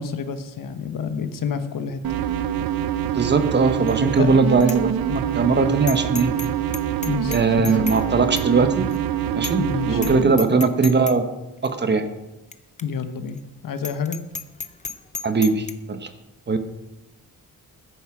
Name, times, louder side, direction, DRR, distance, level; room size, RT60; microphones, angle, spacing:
voice 1, 0.0-2.0 4.2-4.4 7.0-7.7 9.6-10.5 12.8-14.2, left 6 dB, 65° left, 9 dB, 1.3 m, -29 dB
sound 1, 2.0-10.2, right 10 dB, 90° right, 0.7 m, -25 dB
voice 2, 3.1-6.3 7.3-8.9 9.4-11.2 11.6-12.1 15.2-16.1 16.5-16.6, right 4 dB, 30° right, 9 dB, 1.1 m, -20 dB
Bicycle bell, 3.9-4.2 4.6-4.8 5.2-5.3 5.9-6.5 6.7-8.0 8.4-8.5 8.9-9.0 9.4-9.7 10.0-10.1 10.4-11.2 11.6-11.7 12.5-12.6 12.8-12.9 13.3-13.4 13.8-15.7, left 5 dB, 20° left, 0.7 m, -33 dB
14.5 x 10.5 x 4.9 m, 0.99 s
wide cardioid pair, 145°, 35 cm